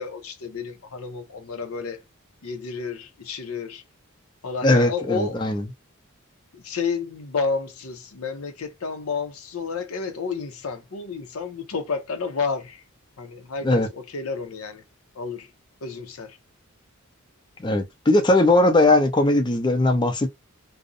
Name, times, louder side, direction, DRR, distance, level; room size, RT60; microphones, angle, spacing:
voice 1, 0.0-2.0 2.4-3.8 4.4-5.4 6.5-12.8 13.2-14.8 15.1-15.5 15.8-16.4, left 5 dB, 85° left, 0.6 m, -31 dB
voice 2, 4.6-5.6 13.6-13.9 17.6-20.3, left 2 dB, 20° left, 0.4 m, -19 dB
2.5 x 2.0 x 2.5 m
head